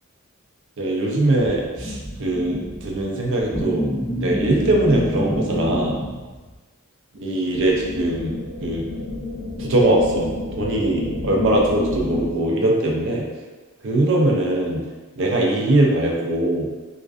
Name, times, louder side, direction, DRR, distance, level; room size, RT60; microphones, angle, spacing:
voice 1, 0.8-3.9 4.1-6.0 7.2-8.3 8.6-8.8 9.6-10.3 10.6-13.2 13.8-14.8 15.2-16.7, right 1 dB, 60° right, -2 dB, 0.5 m, -21 dB
sound 1, 1.4-6.5, equal, 10° left, 0.4 m, -28 dB
sound 2, 7.5-12.6, left 3 dB, 80° left, 0.4 m, -30 dB
2.3 x 2.2 x 2.4 m, 1.3 s
head